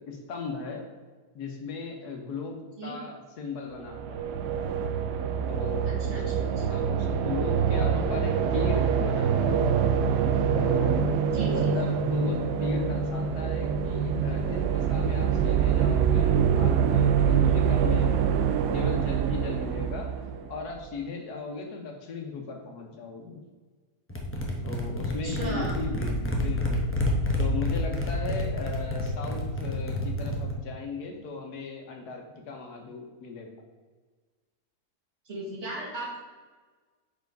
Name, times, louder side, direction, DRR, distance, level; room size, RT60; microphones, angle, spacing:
voice 1, 0.1-0.9 1.3-4.4 5.5-6.2 6.6-9.7 10.6-11.1 11.5-23.4 24.6-26.9 27.4-33.5, left 4 dB, 75° left, 2 dB, 1.5 m, -37 dB
sound 1, 3.8-20.8, right 7 dB, 85° right, 1.2 m, -25 dB
voice 2, 5.8-6.5 11.3-11.7 25.2-25.7 35.3-36.2, right 2 dB, 45° right, -3 dB, 1.8 m, -35 dB
sound 2, 24.1-30.5, left 1 dB, 15° left, 0.5 m, -28 dB
5.7 x 4.6 x 4.6 m, 1.4 s
omnidirectional pair, 1.7 m